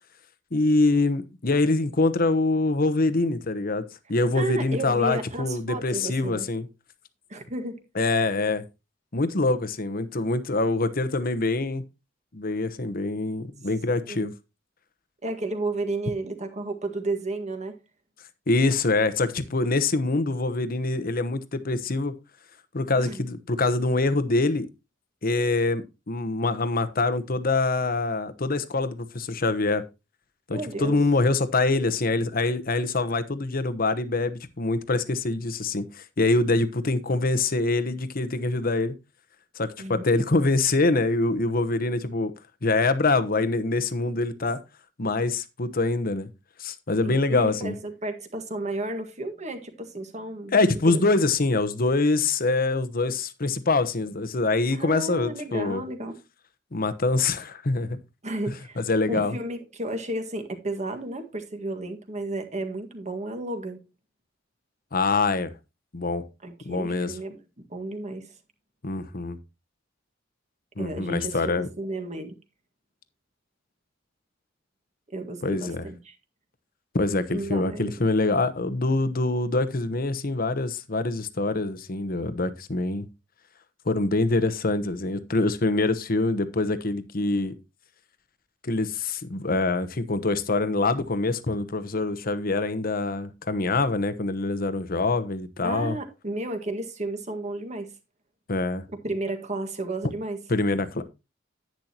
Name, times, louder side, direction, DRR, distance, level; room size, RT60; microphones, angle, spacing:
voice 1, 0.5-3.8 4.1-6.7 7.9-8.6 9.1-11.8 12.3-14.3 18.5-22.1 22.7-24.7 25.2-29.8 30.5-38.9 39.6-42.3 42.6-44.6 45.0-46.3 46.6-47.7 50.5-55.8 56.7-58.0 58.8-59.4 64.9-65.5 65.9-66.2 66.6-67.2 68.8-69.4 70.8-71.7 75.4-75.8 76.9-83.1 83.9-87.5 88.6-96.0 98.5-98.8 100.5-101.0, left 3 dB, 50° left, 1.0 m, -25 dB
voice 2, 4.3-6.5 7.3-7.8 14.1-14.3 15.2-17.8 23.0-23.2 30.5-31.0 39.8-40.1 47.0-50.5 50.8-51.0 54.7-56.2 58.2-58.8 59.1-63.8 66.4-67.4 67.7-68.3 70.8-72.3 75.1-76.1 77.3-77.9 95.6-97.9 99.0-100.4, right 2 dB, 35° right, 1.8 m, -32 dB
10.5 x 9.6 x 2.9 m
head